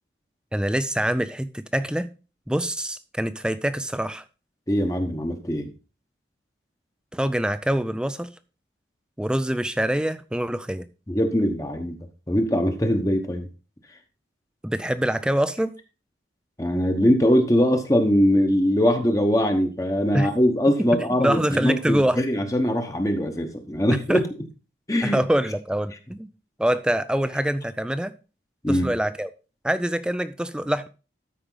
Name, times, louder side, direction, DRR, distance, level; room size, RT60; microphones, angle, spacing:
voice 1, 0.5-2.1 2.5-4.2 7.1-8.3 9.2-10.9 14.6-15.8 20.1-20.3 21.2-22.2 24.1-24.2 25.0-26.3 26.6-28.1 28.7-29.3 29.6-30.9, right 1 dB, 5° right, 0.4 m, -25 dB
voice 2, 4.7-5.7 11.1-12.0 12.3-13.5 16.6-24.2 24.9-25.2 28.6-28.9, equal, 20° left, 1.0 m, -22 dB
13.0 x 5.1 x 3.9 m
head